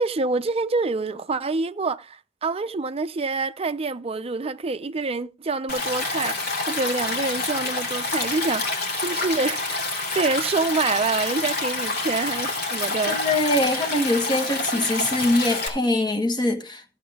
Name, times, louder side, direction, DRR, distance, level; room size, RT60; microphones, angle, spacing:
voice 1, 0.0-13.2, right 3 dB, 35° right, 0.5 m, -26 dB
Stream, 5.7-15.7, left 3 dB, 60° left, 2.8 m, -27 dB
voice 2, 13.1-16.8, left 1 dB, 25° left, 1.5 m, -23 dB
14.0 x 7.9 x 3.5 m
head